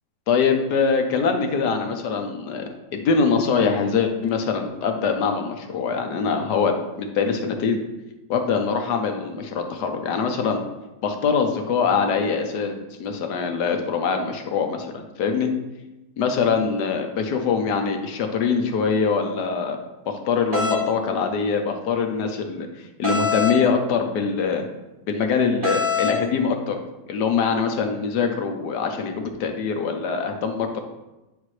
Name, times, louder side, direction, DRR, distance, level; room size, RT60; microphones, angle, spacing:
voice 1, 0.3-2.6 2.9-7.8 8.3-10.6 11.0-15.5 16.2-19.8 20.1-22.7 23.0-24.6 25.1-26.8 27.1-29.1 29.4-30.8, left 5 dB, 70° left, 5 dB, 1.4 m, -23 dB
sound 1, 20.5-20.8 23.0-23.6 25.6-26.2, left 4 dB, 35° right, 1.1 m, -23 dB
10.0 x 5.0 x 3.2 m, 1.0 s
omnidirectional pair, 1.9 m